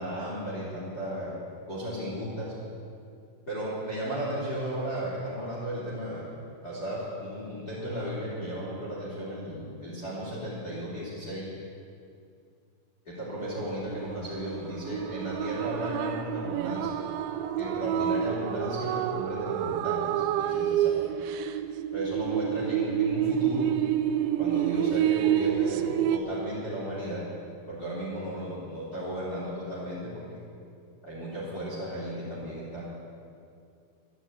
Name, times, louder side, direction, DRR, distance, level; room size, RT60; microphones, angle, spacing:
voice 1, 0.0-1.3 1.7-2.5 3.5-6.3 6.6-11.5 13.0-17.0 17.6-21.0 21.9-23.7 24.4-27.2 27.7-30.2 31.0-32.8, equal, 20° left, -7 dB, 3.4 m, -35 dB
sound 1, 13.5-26.2, right 10 dB, 80° right, 2.9 m, -28 dB
12.5 x 12.0 x 9.0 m, 2.4 s
omnidirectional pair, 5.5 m